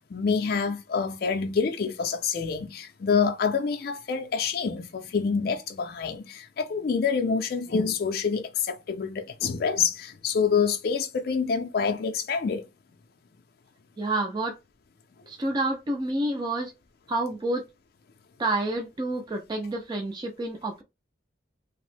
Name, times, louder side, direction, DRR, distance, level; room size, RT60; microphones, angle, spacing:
voice 1, 0.0-12.6, left 5 dB, 55° left, 0.4 m, -27 dB
voice 2, 14.0-14.6 15.3-16.7 17.1-17.6 18.4-20.8, right 2 dB, 20° right, 0.4 m, -29 dB
2.9 x 2.0 x 3.1 m
head